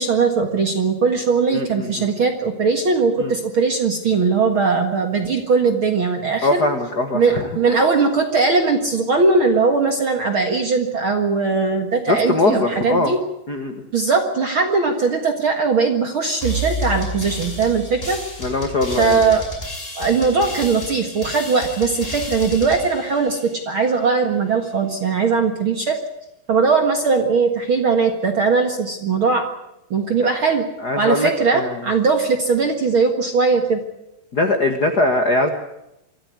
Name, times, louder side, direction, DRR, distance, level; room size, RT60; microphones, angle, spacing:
voice 1, 0.0-6.6 7.1-13.2 13.9-18.2 19.0-19.4 20.0-23.4 23.6-26.0 26.5-29.4 29.9-30.6 31.0-33.8, right 4 dB, 50° right, 4 dB, 1.5 m, -19 dB
voice 2, 1.5-2.1 3.2-3.3 6.4-7.8 12.1-13.2 13.5-13.7 18.4-19.2 30.2-30.3 30.8-31.8 34.3-35.5, left 2 dB, 80° left, 6 dB, 0.9 m, -21 dB
sound 1, 16.4-23.9, equal, 15° left, 5.1 m, -31 dB
25.0 x 14.0 x 9.6 m, 0.86 s
omnidirectional pair, 4.8 m